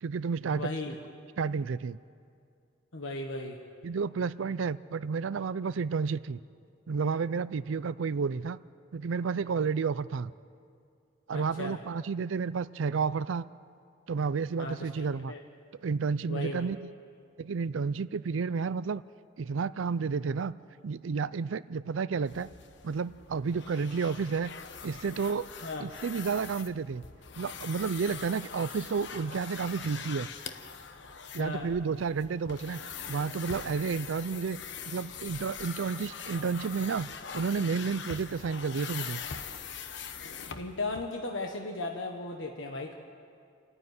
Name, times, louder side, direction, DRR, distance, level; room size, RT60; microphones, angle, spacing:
voice 1, 0.0-0.7 1.4-2.0 3.8-6.4 6.9-8.6 8.9-10.3 11.3-13.4 14.1-15.3 15.8-16.9 17.4-19.0 19.4-20.5 20.8-22.5 22.8-24.5 24.8-25.5 25.8-27.0 27.4-30.3 31.3-32.8 33.1-34.6 34.9-37.1 37.3-39.2, right 5 dB, 85° right, 16 dB, 0.5 m, -31 dB
voice 2, 0.5-1.0 2.9-3.6 11.3-11.8 14.6-15.4 16.3-16.7 25.6-25.9 31.4-31.7 40.5-42.9, left 2 dB, 85° left, 2 dB, 1.4 m, -36 dB
sound 1, 22.3-41.0, left 6 dB, 65° left, 1.0 m, -43 dB
28.0 x 9.8 x 9.5 m, 2.4 s
head